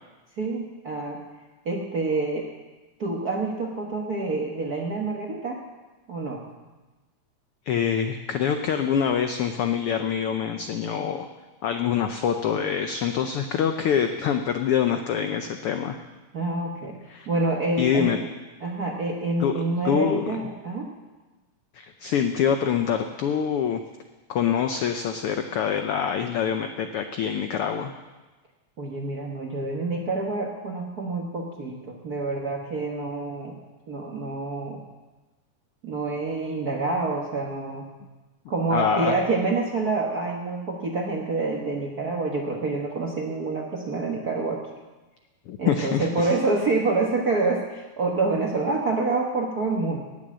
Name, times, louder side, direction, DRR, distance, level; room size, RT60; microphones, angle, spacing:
voice 1, 0.4-1.2 1.6-2.5 3.0-5.6 6.1-6.4 16.3-16.9 17.3-18.2 18.6-20.9 28.8-33.6 33.9-34.8 35.8-37.9 38.5-44.6 45.6-50.0, right 3 dB, 50° right, 0 dB, 1.1 m, -27 dB
voice 2, 7.7-11.3 11.6-16.0 17.1-17.3 17.8-18.2 19.4-19.5 19.8-20.2 21.7-23.8 24.3-27.9 38.7-39.2 45.5-46.3, left 8 dB, 90° left, 7 dB, 1.2 m, -25 dB
18.0 x 7.8 x 7.5 m, 1.2 s
omnidirectional pair, 3.5 m